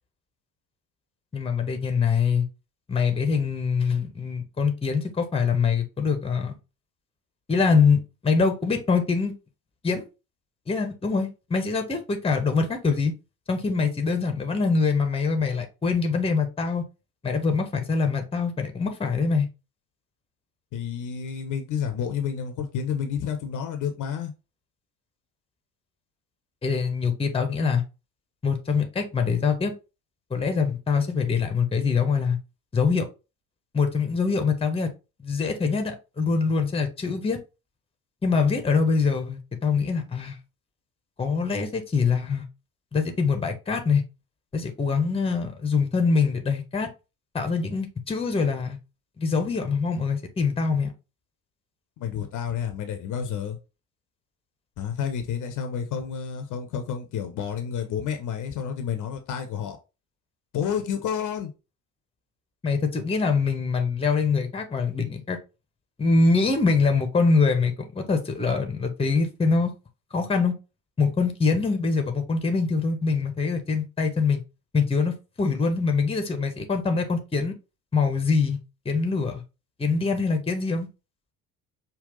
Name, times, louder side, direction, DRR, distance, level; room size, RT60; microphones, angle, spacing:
voice 1, 1.3-2.5 2.9-6.6 7.5-9.3 9.8-10.1 10.7-13.1 13.5-16.8 17.2-19.5 26.6-27.8 28.4-29.8 30.3-32.4 32.7-33.1 33.7-34.9 35.2-37.4 38.2-40.4 41.2-42.5 42.9-44.0 44.5-46.9 47.3-48.8 49.2-50.9 62.6-65.4 66.0-69.7 70.1-70.5 71.0-74.4 74.7-77.5 77.9-78.6 78.8-79.4 79.8-80.9, left 4 dB, 15° left, 6 dB, 0.9 m, -24 dB
voice 2, 20.7-24.3 52.0-53.6 54.8-59.8 60.5-61.5, left 7 dB, 40° left, 5 dB, 0.8 m, -30 dB
5.3 x 2.4 x 3.8 m, 0.29 s
figure-of-eight pair, 55°, 45 cm